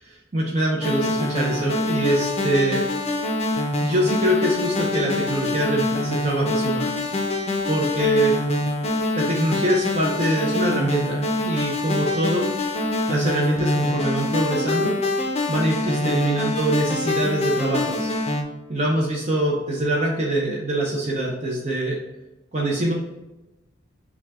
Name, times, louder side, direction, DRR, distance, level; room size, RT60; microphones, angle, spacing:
voice 1, 0.3-2.8 3.8-6.9 7.7-8.4 9.2-12.5 13.1-15.0 15.5-18.1 18.7-22.0 22.5-22.9, right 1 dB, 35° right, -3 dB, 0.6 m, -24 dB
sound 1, 0.8-18.4, left 2 dB, 35° left, 0.6 m, -25 dB
5.9 x 2.3 x 3.5 m, 1.0 s
head